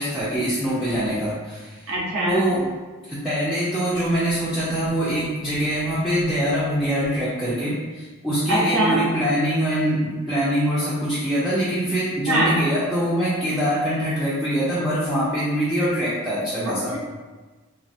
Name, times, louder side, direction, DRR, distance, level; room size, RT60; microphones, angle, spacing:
voice 1, 0.0-1.8 2.2-2.7 3.1-16.9, equal, ahead, -11 dB, 0.4 m, -24 dB
voice 2, 1.9-2.4 8.5-9.0 12.3-12.6 16.7-17.0, right 1 dB, 60° right, -5 dB, 0.6 m, -22 dB
3.2 x 2.1 x 2.6 m, 1.3 s
head